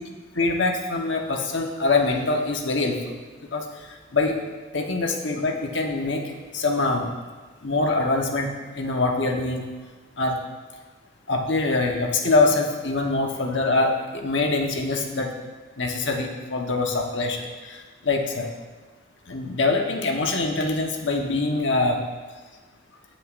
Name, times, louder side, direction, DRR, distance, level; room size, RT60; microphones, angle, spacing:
voice 1, 0.3-3.0 3.5-3.7 4.1-4.4 4.7-7.1 7.6-9.6 10.2-10.4 11.3-15.3 15.8-18.5 19.3-22.0, left 3 dB, 65° left, 2 dB, 1.2 m, -24 dB
19.0 x 6.6 x 2.6 m, 1.3 s
head